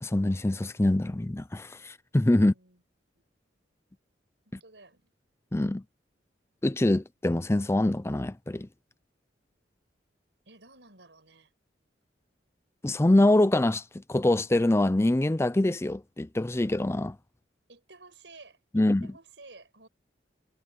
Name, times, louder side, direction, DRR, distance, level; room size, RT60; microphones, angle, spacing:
voice 1, 0.0-2.5 4.5-4.6 5.5-5.8 6.6-8.7 12.8-17.2 18.7-19.1, left 1 dB, 15° left, 0.5 m, -24 dB
voice 2, 2.4-2.8 4.4-5.1 10.4-11.5 17.7-19.9, right 3 dB, 75° right, 6.8 m, -53 dB
head